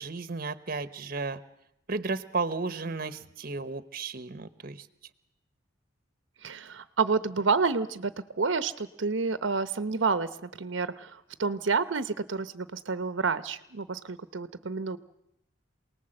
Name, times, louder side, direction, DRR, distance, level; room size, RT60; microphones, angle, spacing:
voice 1, 0.0-1.4 1.9-4.9, right 4 dB, 50° right, 14 dB, 0.9 m, -33 dB
voice 2, 6.4-8.1 8.4-15.0, right 4 dB, 75° right, 13 dB, 0.8 m, -29 dB
27.5 x 19.0 x 7.7 m, 0.82 s
head